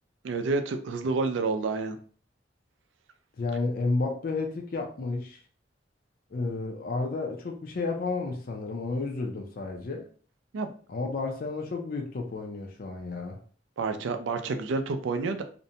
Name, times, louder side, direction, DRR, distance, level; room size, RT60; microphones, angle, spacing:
voice 1, 0.2-2.0 10.5-10.7 13.8-15.4, right 3 dB, 80° right, 0.4 m, -29 dB
voice 2, 3.4-5.4 6.3-10.1 10.9-13.4, left 3 dB, 50° left, 0.4 m, -31 dB
2.5 x 2.1 x 2.7 m
head